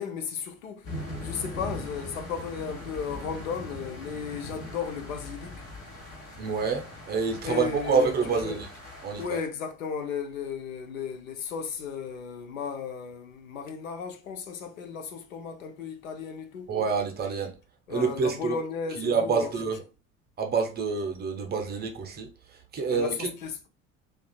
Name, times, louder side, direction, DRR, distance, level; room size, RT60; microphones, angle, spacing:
voice 1, 0.0-5.6 7.4-8.6 9.2-16.7 17.9-19.5 22.9-23.7, left 6 dB, 75° left, 0.5 m, -35 dB
sound 1, 0.8-9.3, left 1 dB, 45° left, 1.1 m, -40 dB
voice 2, 6.4-8.7 9.0-9.4 16.7-17.5 17.9-18.5 19.0-19.8 20.4-23.3, right 5 dB, 25° right, 0.5 m, -27 dB
2.4 x 2.3 x 2.2 m
figure-of-eight pair, 60°, 41 cm